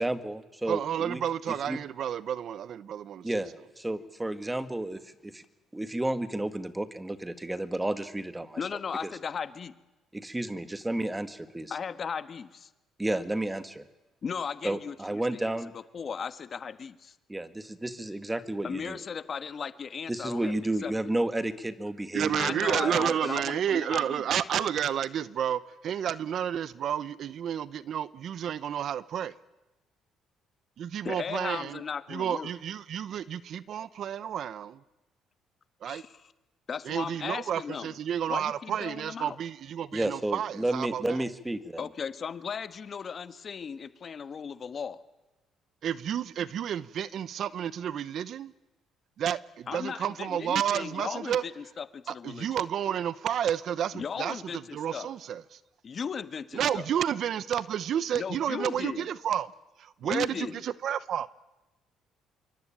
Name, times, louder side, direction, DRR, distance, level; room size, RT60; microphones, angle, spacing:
voice 1, 0.0-1.2 1.5-1.8 3.2-5.4 5.7-8.6 9.0-9.1 10.1-11.7 13.0-13.9 14.6-15.7 17.3-19.0 20.1-23.2 39.9-41.9, right 1 dB, 10° right, 1.9 m, -32 dB
voice 2, 0.7-3.3 22.1-29.3 30.8-31.8 32.1-34.8 35.8-36.0 36.9-41.2 45.8-48.5 49.2-51.4 52.2-55.4 56.5-59.5 59.8-61.3, right 9 dB, 60° right, 0.9 m, -31 dB
voice 3, 8.6-9.7 11.7-12.7 14.2-15.6 15.9-17.1 18.6-20.5 20.8-20.9 22.3-24.2 31.0-32.5 35.8-36.3 36.7-38.0 38.3-39.4 41.8-45.0 49.7-52.5 53.9-55.1 55.8-56.9 58.1-59.1 60.0-60.6, left 6 dB, 40° left, 1.4 m, -36 dB
26.5 x 23.5 x 8.9 m
cardioid pair, 100°, 0 cm